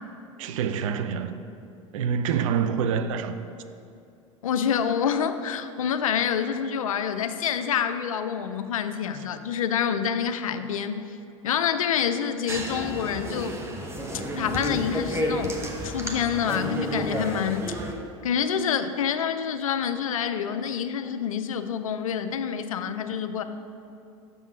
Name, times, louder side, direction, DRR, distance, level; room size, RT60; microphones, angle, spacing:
voice 1, 0.4-1.4 1.9-3.4, right 7 dB, 70° right, 10 dB, 0.5 m, -26 dB
voice 2, 4.4-11.2 11.4-13.6 14.4-15.5 15.8-17.8 18.2-23.4, left 8 dB, 85° left, 10 dB, 0.4 m, -27 dB
sound 1, 12.5-17.9, equal, 15° right, 0.9 m, -31 dB
6.6 x 3.6 x 6.0 m, 2.6 s
hypercardioid pair, 85°, 17 cm